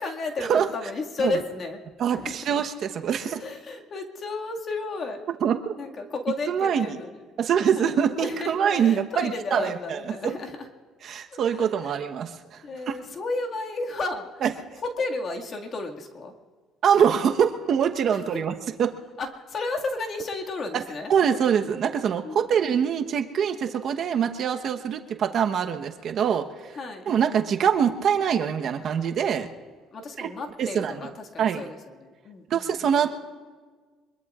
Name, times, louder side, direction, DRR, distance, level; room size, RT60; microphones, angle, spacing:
voice 1, 0.0-1.8 2.1-2.4 3.2-5.2 5.8-7.2 7.8-10.7 11.3-12.0 12.6-14.5 14.8-16.3 18.1-18.4 19.2-21.1 22.2-22.5 26.8-27.1 29.9-32.9, left 3 dB, 40° left, 2 dB, 2.0 m, -33 dB
voice 2, 2.0-3.4 5.4-5.8 6.5-6.9 7.4-10.3 11.0-12.9 14.4-14.5 16.8-18.5 18.8-18.9 20.7-20.8 21.1-26.4 27.1-29.5 30.2-30.3 30.6-30.9 31.4-31.7 32.5-33.1, right 8 dB, 55° right, 5 dB, 1.0 m, -24 dB
24.5 x 21.5 x 2.5 m, 1.5 s
cardioid pair, 105°, 0 cm